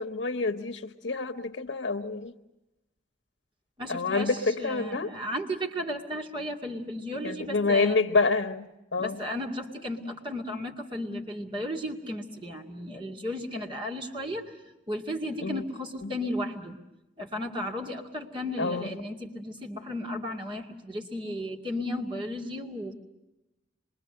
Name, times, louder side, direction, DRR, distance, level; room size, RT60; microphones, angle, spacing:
voice 1, 0.0-2.3 3.9-5.1 7.2-9.2 15.4-15.6 16.0-16.1 18.6-18.9, left 3 dB, 70° left, 7 dB, 1.0 m, -27 dB
voice 2, 3.8-8.0 9.0-14.5 14.9-16.8 17.2-22.9, left 1 dB, 25° right, 1 dB, 2.2 m, -34 dB
26.5 x 22.5 x 7.7 m, 0.99 s
head